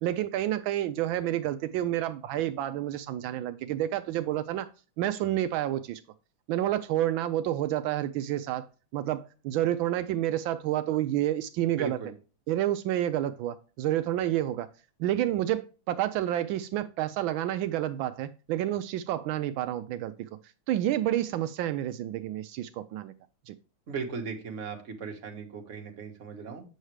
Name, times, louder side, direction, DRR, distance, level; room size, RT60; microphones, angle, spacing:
voice 1, 0.0-4.7 5.0-6.0 6.5-8.7 8.9-12.0 12.5-14.7 15.0-20.3 20.7-23.1 23.5-23.6, right 13 dB, 80° right, 1.3 m, -29 dB
voice 2, 11.8-12.1 23.9-26.6, right 5 dB, 40° right, 1.6 m, -37 dB
7.9 x 6.4 x 3.1 m
omnidirectional pair, 2.1 m